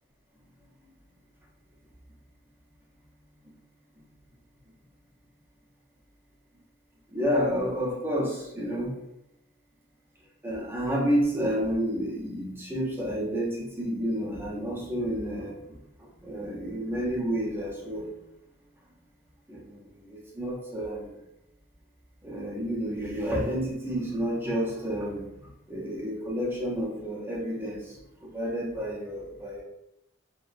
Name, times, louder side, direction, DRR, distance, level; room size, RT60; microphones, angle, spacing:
voice 1, 7.1-9.0 10.4-15.6 16.0-18.1 19.5-21.1 22.2-29.6, equal, 10° right, -5 dB, 0.6 m, -30 dB
2.7 x 2.1 x 2.4 m, 0.85 s
head